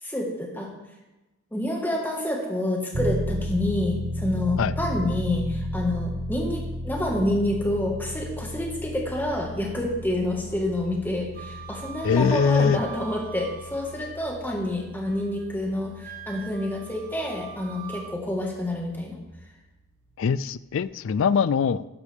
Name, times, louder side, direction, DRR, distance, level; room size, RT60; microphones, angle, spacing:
voice 1, 0.0-0.7 1.5-19.2, left 1 dB, 10° left, 0 dB, 1.6 m, -28 dB
sound 1, 2.9-19.3, equal, 75° right, 1.1 m, -35 dB
Wind instrument woodwind instrument, 11.3-14.4 14.8-15.5 16.0-18.2, right 8 dB, 40° right, 0.7 m, -43 dB
voice 2, 12.0-12.8 20.2-21.9, left 6 dB, 60° left, 17 dB, 0.3 m, -22 dB
13.0 x 9.9 x 3.5 m, 1.0 s
head